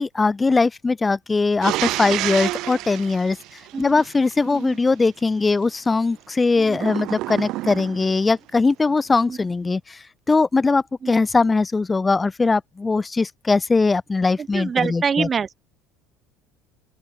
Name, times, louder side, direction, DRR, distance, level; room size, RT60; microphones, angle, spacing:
voice 1, 0.0-15.3, left 3 dB, 20° left, 0.6 m, -21 dB
sound 1, 1.6-4.3 6.7-8.2, right 17 dB, 65° right, 1.3 m, -28 dB
voice 2, 4.4-4.8 6.6-6.8 9.3-9.4 11.0-11.1 14.4-15.6, right 6 dB, 35° right, 1.0 m, -26 dB
open air
supercardioid pair, 85°, 0 cm